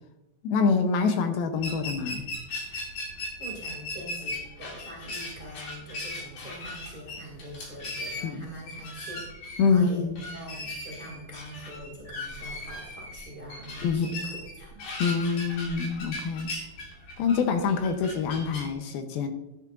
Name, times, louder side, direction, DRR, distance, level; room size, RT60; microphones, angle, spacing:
voice 1, 0.4-2.3 8.2-8.4 9.6-10.2 13.8-14.1 15.0-16.5 17.2-19.3, left 5 dB, 75° left, 6 dB, 2.4 m, -25 dB
sound 1, 1.6-18.7, left 2 dB, 55° left, 3.8 m, -38 dB
voice 2, 3.4-9.2 9.6-10.1 10.3-14.8, equal, 20° right, -3 dB, 1.2 m, -43 dB
11.5 x 10.5 x 2.5 m, 0.93 s
omnidirectional pair, 4.8 m